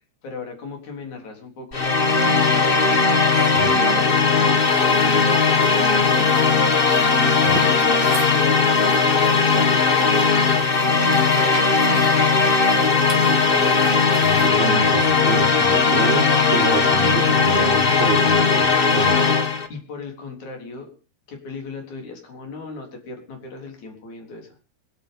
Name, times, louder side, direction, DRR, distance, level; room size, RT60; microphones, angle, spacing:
voice 1, 0.2-2.8 3.5-4.4 4.9-6.4 7.5-10.3 10.8-12.6 19.7-20.9 21.3-24.6, left 4 dB, 75° left, 2 dB, 5.2 m, -37 dB
sound 1, 1.7-19.7, left 4 dB, 45° left, 0.7 m, -18 dB
voice 2, 3.4-3.8 7.3-7.6 14.2-19.2, right 5 dB, 70° right, 2 dB, 2.7 m, -29 dB
sound 2, 4.6-14.5, right 6 dB, 45° right, 2.3 m, -39 dB
25.0 x 9.5 x 5.4 m, 0.37 s
omnidirectional pair, 3.3 m